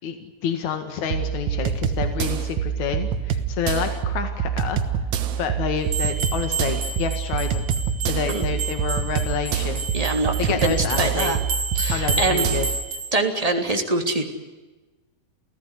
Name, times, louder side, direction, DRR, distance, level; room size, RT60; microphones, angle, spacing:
voice 1, 0.0-4.8 5.4-7.7 8.1-9.8 10.4-11.3 11.9-12.7, left 6 dB, 80° left, 7 dB, 3.3 m, -28 dB
sound 1, 1.1-12.8, right 8 dB, 75° right, 2.7 m, -26 dB
sound 2, 5.9-13.1, right 4 dB, 60° right, 3.9 m, -31 dB
voice 2, 9.9-11.4 11.7-12.5 13.1-14.2, right 2 dB, 10° right, 4 dB, 3.0 m, -24 dB
28.5 x 17.0 x 9.8 m, 1.2 s
omnidirectional pair, 3.3 m